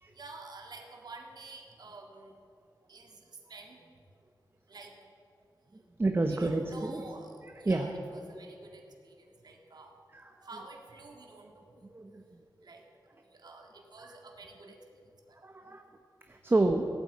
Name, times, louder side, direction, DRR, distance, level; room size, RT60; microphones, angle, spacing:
voice 1, 0.1-2.3 2.9-3.8 4.7-5.0 6.3-9.9 10.4-11.8 12.6-12.8 13.2-14.8 15.3-15.4, right 3 dB, 65° right, 1 dB, 2.0 m, -49 dB
voice 2, 6.0-7.0 7.7-7.9 11.9-12.2 15.4-15.8 16.3-16.9, right 2 dB, 30° right, 4 dB, 1.0 m, -28 dB
16.5 x 9.2 x 8.5 m, 2.5 s
wide cardioid pair, 105°, 8 cm